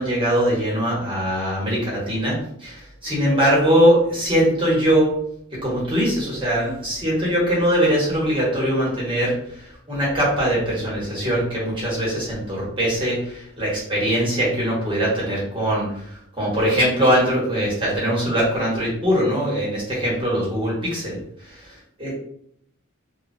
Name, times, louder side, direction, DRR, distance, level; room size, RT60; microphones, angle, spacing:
voice 1, 0.0-5.1 5.5-9.6 9.9-21.2 21.5-22.1, equal, 25° right, -6 dB, 1.2 m, -21 dB
2.9 x 2.2 x 2.6 m, 0.70 s
head